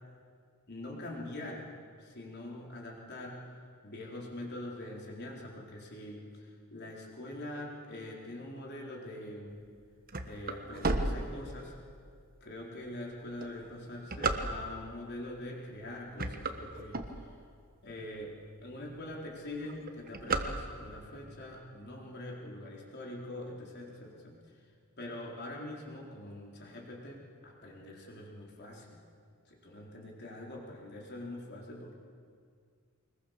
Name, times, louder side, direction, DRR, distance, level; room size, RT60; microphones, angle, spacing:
voice 1, 0.7-1.7 2.0-3.6 3.8-9.6 10.2-11.7 12.4-17.4 17.8-24.6 25.0-29.0 29.5-31.9, left 1 dB, 50° left, -2 dB, 4.3 m, -44 dB
sound 1, 9.6-11.9 12.5-12.6 13.2-15.0 15.6-15.8 16.1-17.6 18.1-18.2 18.5-18.6 18.9-19.2 19.5-21.1, right 3 dB, 40° right, 1.3 m, -33 dB
25.0 x 21.5 x 6.8 m, 2.2 s
head